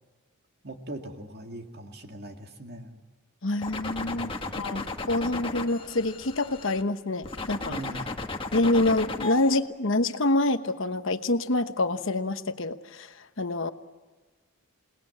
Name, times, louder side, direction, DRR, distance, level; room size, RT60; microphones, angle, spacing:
voice 1, 0.6-3.0 4.0-4.7 7.7-8.1, right 1 dB, 45° right, 4 dB, 2.3 m, -41 dB
voice 2, 3.4-7.8 8.5-13.1 13.4-13.7, left 2 dB, 60° left, 9 dB, 1.1 m, -26 dB
sound 1, 3.6-6.8 7.2-9.5, left 3 dB, 25° left, 1.4 m, -35 dB
28.5 x 19.5 x 8.6 m, 1.3 s
head